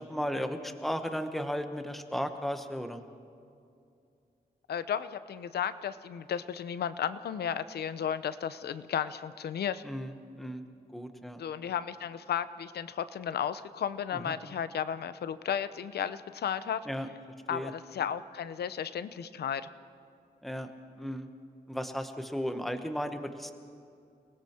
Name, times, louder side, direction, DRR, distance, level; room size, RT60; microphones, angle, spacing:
voice 1, 0.0-3.0 9.8-10.6 10.9-11.4 14.1-14.3 16.8-17.1 17.5-17.7 20.4-20.7 21.0-21.3 21.7-23.5, equal, ahead, 6 dB, 1.0 m, -35 dB
voice 2, 4.7-9.8 11.4-16.9 17.5-19.7, left 8 dB, 90° left, 13 dB, 0.8 m, -34 dB
30.0 x 20.0 x 4.4 m, 2.5 s
wide cardioid pair, 175°, 16 cm